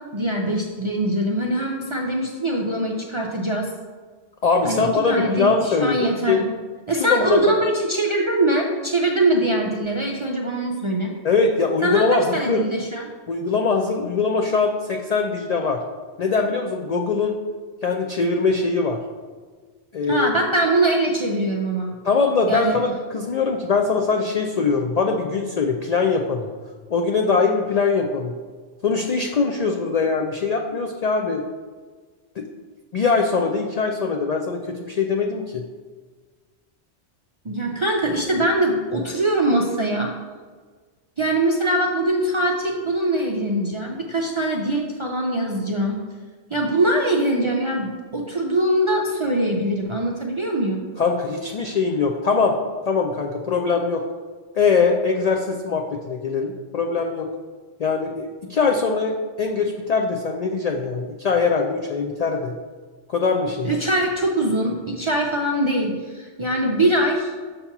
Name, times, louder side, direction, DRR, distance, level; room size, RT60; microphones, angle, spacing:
voice 1, 0.1-3.7 4.6-6.4 6.9-11.1 11.8-13.1 20.1-22.0 22.5-22.8 37.4-40.1 41.2-46.0 46.5-50.8 63.6-67.3, right 1 dB, 50° right, -1 dB, 0.3 m, -22 dB
voice 2, 4.4-6.4 7.0-7.4 11.2-12.6 13.3-15.8 16.2-17.4 17.8-19.0 19.9-20.3 22.0-26.5 26.9-28.3 28.8-31.4 32.4-32.5 32.9-35.6 51.0-52.6 52.9-54.0 54.5-57.3 57.8-62.5 63.1-63.7, left 4 dB, 85° left, 2 dB, 0.3 m, -22 dB
6.7 x 2.8 x 5.8 m, 1.5 s
omnidirectional pair, 1.2 m